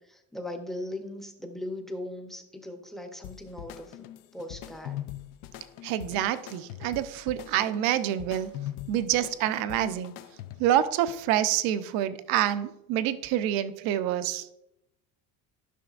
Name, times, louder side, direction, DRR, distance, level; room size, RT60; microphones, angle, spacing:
voice 1, 0.1-4.1 4.3-5.0, left 1 dB, ahead, 4 dB, 0.6 m, -39 dB
sound 1, 3.2-10.8, left 12 dB, 70° left, 0.5 m, -42 dB
voice 2, 5.8-8.5 8.9-10.1 10.6-14.5, right 11 dB, 75° right, 12 dB, 0.6 m, -27 dB
12.0 x 5.9 x 2.4 m, 0.83 s
cardioid pair, 155°, 36 cm